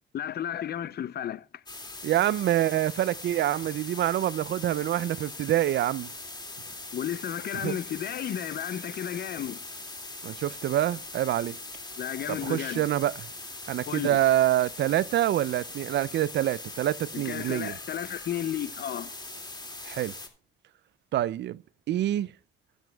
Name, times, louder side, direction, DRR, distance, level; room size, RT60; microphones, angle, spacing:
voice 1, 0.1-1.6 6.9-9.7 12.0-12.8 13.9-14.2 17.1-19.1, left 10 dB, 55° left, 0.6 m, -33 dB
sound 1, 1.7-20.3, left 2 dB, 20° left, 2.3 m, -41 dB
voice 2, 2.0-6.1 7.6-7.8 10.2-11.6 12.3-13.1 13.7-17.7 19.8-20.1 21.1-21.6 21.9-22.3, right 13 dB, 65° right, 0.4 m, -26 dB
22.5 x 7.9 x 2.3 m
cardioid pair, 90°, 20 cm